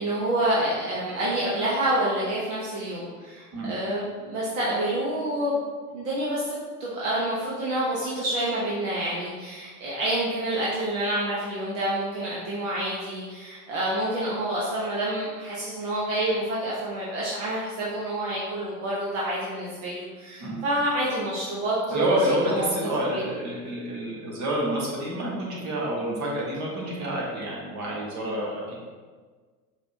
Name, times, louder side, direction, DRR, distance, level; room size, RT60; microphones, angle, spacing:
voice 1, 0.0-5.7 5.9-22.0 22.4-22.7 23.1-23.2, right 1 dB, 55° right, -7 dB, 1.1 m, -28 dB
voice 2, 21.9-28.7, right 1 dB, 35° right, -4 dB, 1.4 m, -28 dB
4.9 x 3.3 x 2.8 m, 1.5 s
figure-of-eight pair, 85°, 47 cm